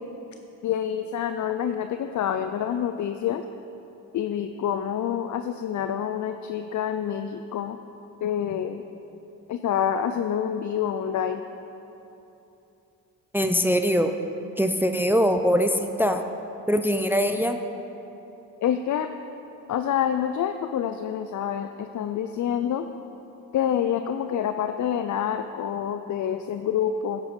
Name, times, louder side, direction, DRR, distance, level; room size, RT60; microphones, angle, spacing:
voice 1, 0.6-3.4 4.1-7.8 8.2-8.8 9.5-11.4 18.6-19.1 19.7-22.9 23.5-27.2, left 9 dB, 55° left, 8 dB, 0.5 m, -27 dB
voice 2, 13.3-14.2 14.6-16.2 16.7-17.6, equal, 5° right, 6 dB, 0.5 m, -22 dB
11.0 x 7.5 x 5.3 m, 3.0 s
supercardioid pair, 60°, 36 cm